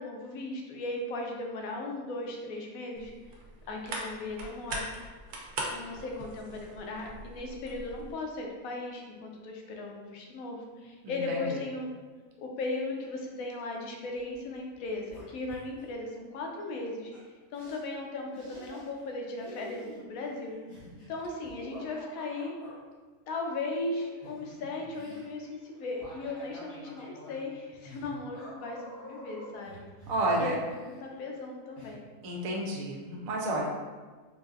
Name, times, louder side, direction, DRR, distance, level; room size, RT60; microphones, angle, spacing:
voice 1, 0.0-3.1 3.7-4.9 5.7-11.9 12.4-17.1 17.5-20.6 21.1-22.6 23.3-29.9 30.4-30.7 31.0-32.0, left 2 dB, 70° left, 1 dB, 1.0 m, -37 dB
sound 1, 3.0-8.1, right 2 dB, 80° right, 1.1 m, -41 dB
voice 2, 11.0-11.6 30.1-30.5 32.2-33.7, right 1 dB, 65° right, -2 dB, 1.0 m, -31 dB
sound 2, 14.2-14.4 14.7-15.9 17.1-17.2 17.5-17.8 18.3-19.1 19.4-22.8 23.9-31.4 31.7-31.9, equal, 90° left, 1.8 m, -48 dB
4.0 x 2.7 x 2.4 m, 1.4 s
omnidirectional pair, 1.6 m